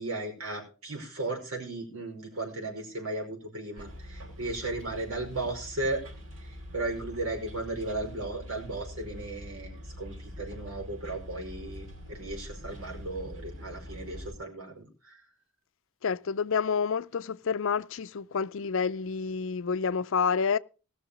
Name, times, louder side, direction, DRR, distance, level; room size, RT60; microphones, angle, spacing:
voice 1, 0.0-6.0 6.4-15.2, right 2 dB, 90° right, 5.3 m, -36 dB
Bus, 3.8-14.3, left 1 dB, 70° right, 5.0 m, -44 dB
voice 2, 16.0-20.6, left 6 dB, 65° left, 0.5 m, -29 dB
19.0 x 6.5 x 5.1 m
head